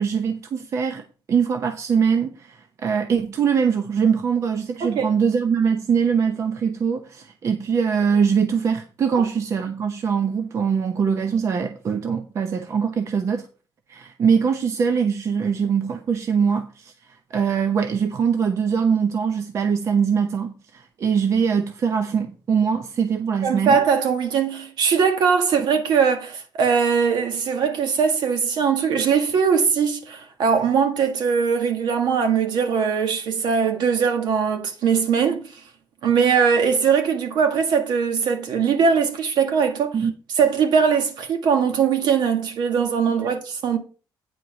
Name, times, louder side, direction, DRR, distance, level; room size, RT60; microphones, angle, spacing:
voice 1, 0.0-13.5 13.9-16.9 17.3-23.8 39.9-40.1 43.1-43.3, right 6 dB, 40° right, 0.9 m, -22 dB
voice 2, 23.4-35.6 36.0-40.0 40.4-43.8, right 6 dB, 65° right, 1.9 m, -21 dB
9.4 x 4.6 x 5.7 m
cardioid pair, 175°, 8 cm